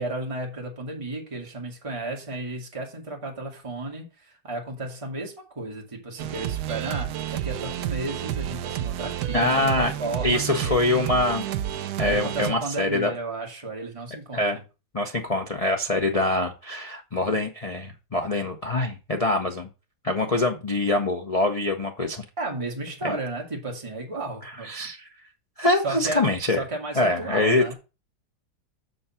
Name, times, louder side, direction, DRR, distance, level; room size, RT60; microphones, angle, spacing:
voice 1, 0.0-9.5 10.0-10.8 12.0-14.6 22.4-24.7 25.8-27.7, right 2 dB, 15° right, 1.8 m, -33 dB
sound 1, 6.2-12.5, right 11 dB, 70° right, 1.0 m, -30 dB
voice 2, 9.3-9.9 10.2-11.4 12.0-13.1 14.3-14.6 14.9-19.7 20.0-22.2 23.0-23.2 24.4-25.1 25.6-26.6 27.0-27.7, left 2 dB, 70° left, 0.3 m, -24 dB
6.7 x 5.3 x 5.7 m
omnidirectional pair, 2.1 m